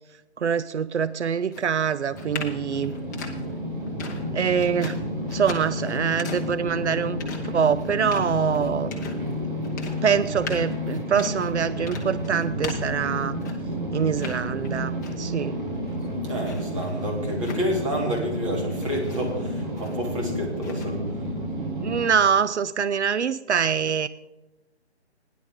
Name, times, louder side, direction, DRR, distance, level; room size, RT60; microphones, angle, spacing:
voice 1, 0.4-2.9 4.3-5.0 5.3-9.0 10.0-13.4 13.9-15.6 21.8-24.1, right 7 dB, 85° right, 16 dB, 0.5 m, -24 dB
sound 1, 1.5-13.8 14.1-15.4 15.7-18.4 18.7-20.2 20.6-20.8, left 4 dB, 15° left, 1.0 m, -40 dB
sound 2, 2.1-22.1, equal, 45° right, 2.2 m, -31 dB
voice 2, 16.2-21.2, equal, 30° right, -1 dB, 2.8 m, -29 dB
17.0 x 10.5 x 3.7 m, 1.0 s
figure-of-eight pair, 150°, 34 cm